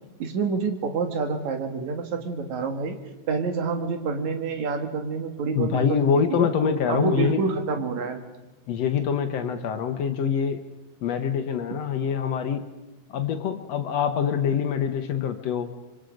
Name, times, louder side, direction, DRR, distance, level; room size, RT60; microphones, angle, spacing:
voice 1, 0.2-3.0 3.3-6.5 6.9-8.2, right 5 dB, 55° right, 5 dB, 3.0 m, -27 dB
voice 2, 5.6-7.4 8.7-10.6 11.0-12.6 13.1-15.7, left 7 dB, 65° left, 8 dB, 1.6 m, -25 dB
25.5 x 24.5 x 5.2 m, 1.1 s
omnidirectional pair, 4.2 m